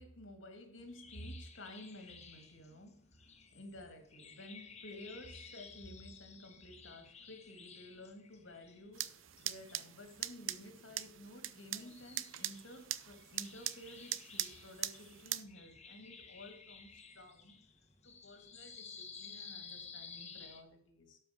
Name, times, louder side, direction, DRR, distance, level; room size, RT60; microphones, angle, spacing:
voice 1, 0.0-3.2 3.5-21.2, left 1 dB, 80° left, 2.5 m, -53 dB
sound 1, 0.8-20.6, left 5 dB, 35° left, 1.4 m, -55 dB
sound 2, 8.9-15.4, right 13 dB, 85° right, 0.6 m, -42 dB
12.5 x 5.7 x 5.3 m
head